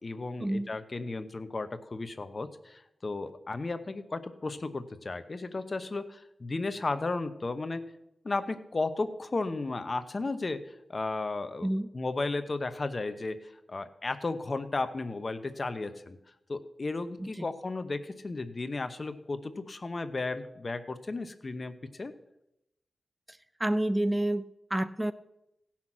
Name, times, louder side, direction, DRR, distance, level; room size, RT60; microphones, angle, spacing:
voice 1, 0.0-7.8 8.2-16.2 16.5-22.1, left 3 dB, 45° left, 11 dB, 0.9 m, -34 dB
voice 2, 23.6-25.1, right 1 dB, 10° right, 15 dB, 0.4 m, -29 dB
16.5 x 5.9 x 6.2 m, 0.86 s
wide cardioid pair, 75°, 0 cm